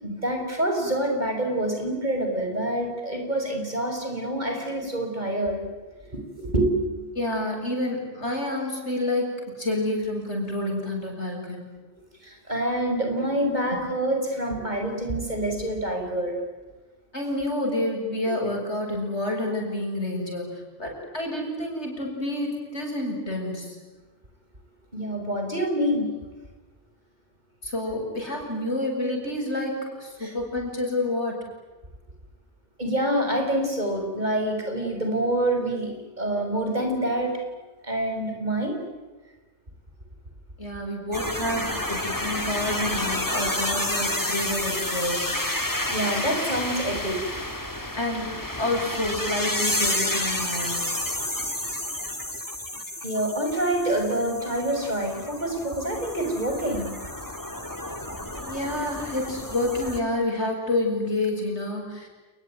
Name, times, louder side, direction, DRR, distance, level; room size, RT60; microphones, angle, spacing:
voice 1, 0.0-5.6 6.1-7.0 12.2-16.3 24.9-26.1 30.2-30.3 32.8-38.8 45.9-47.4 53.0-56.9, right 1 dB, 40° right, 3 dB, 6.5 m, -27 dB
voice 2, 7.1-11.7 13.7-13.8 17.1-23.8 27.6-31.4 40.6-45.4 47.9-48.3 48.6-50.8 58.4-62.1, left 1 dB, 80° left, 1 dB, 7.8 m, -29 dB
sound 1, 41.1-60.0, left 1 dB, 15° left, 2.5 m, -30 dB
29.5 x 21.5 x 9.4 m, 1.2 s
omnidirectional pair, 1.1 m